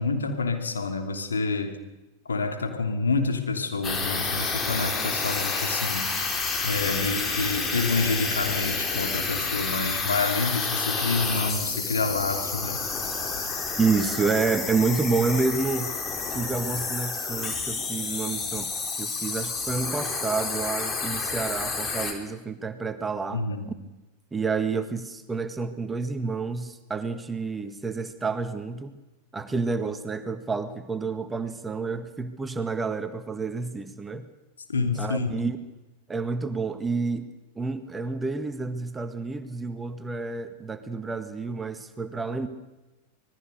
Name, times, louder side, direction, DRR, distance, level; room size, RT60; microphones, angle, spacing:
voice 1, 0.0-1.8 2.3-6.1 6.6-12.8 23.3-23.7 34.7-35.3, left 3 dB, 70° left, 6 dB, 3.0 m, -28 dB
sound 1, 3.8-22.1, left 4 dB, 25° left, 3.9 m, -29 dB
voice 2, 13.8-15.9 16.3-18.7 19.0-23.5 24.3-28.9 29.3-34.3 34.9-35.6 36.1-37.3 37.5-42.5, right 4 dB, 15° right, 10 dB, 1.7 m, -29 dB
26.0 x 20.0 x 6.6 m, 1.1 s
figure-of-eight pair, 90°, 0 cm